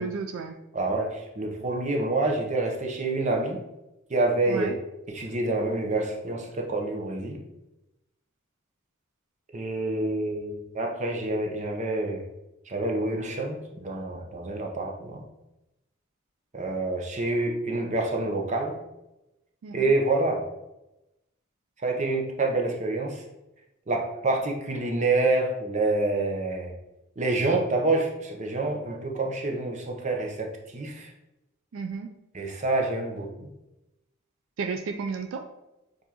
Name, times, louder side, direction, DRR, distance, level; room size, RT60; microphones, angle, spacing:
voice 1, 0.0-0.6 4.5-4.8 19.6-19.9 31.7-32.1 34.6-35.5, right 5 dB, 70° right, 5 dB, 0.4 m, -33 dB
voice 2, 0.7-3.6 4.1-4.7 5.1-7.4 9.5-12.2 12.7-15.2 16.5-18.8 19.7-20.4 21.8-23.2 23.9-26.7 27.2-31.1 32.3-33.5, right 2 dB, 35° right, 1 dB, 0.7 m, -27 dB
6.8 x 2.6 x 2.9 m, 0.93 s
head